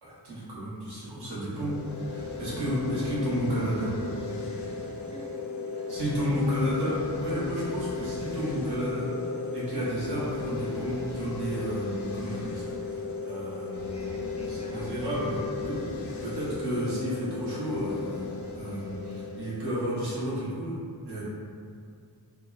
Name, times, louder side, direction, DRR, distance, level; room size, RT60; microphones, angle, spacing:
voice 1, 0.0-1.7 2.0-3.9 5.9-9.2 9.5-14.0 14.4-15.8 16.2-18.2 18.5-20.7 21.1-21.2, equal, 75° right, -9 dB, 1.0 m, -32 dB
sound 1, 1.5-20.6, left 4 dB, 75° left, 0.5 m, -36 dB
voice 2, 5.0-5.4 6.4-6.7 13.9-15.0, equal, 20° left, -5 dB, 0.4 m, -48 dB
2.5 x 2.2 x 2.3 m, 2.3 s
wide cardioid pair, 80°, 40 cm